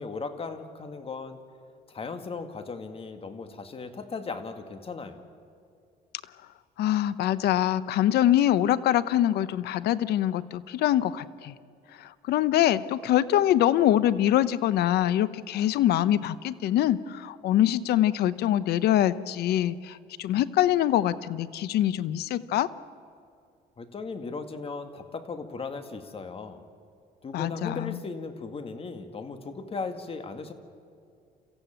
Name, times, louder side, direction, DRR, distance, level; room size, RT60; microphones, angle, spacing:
voice 1, 0.0-1.4 1.9-5.3 23.8-26.6 27.2-30.5, left 4 dB, 35° left, 8 dB, 2.0 m, -37 dB
voice 2, 6.8-11.5 12.0-22.7 27.3-28.0, left 12 dB, 70° left, 16 dB, 0.8 m, -24 dB
29.5 x 15.0 x 9.0 m, 2.4 s
cardioid pair, 110°, 17 cm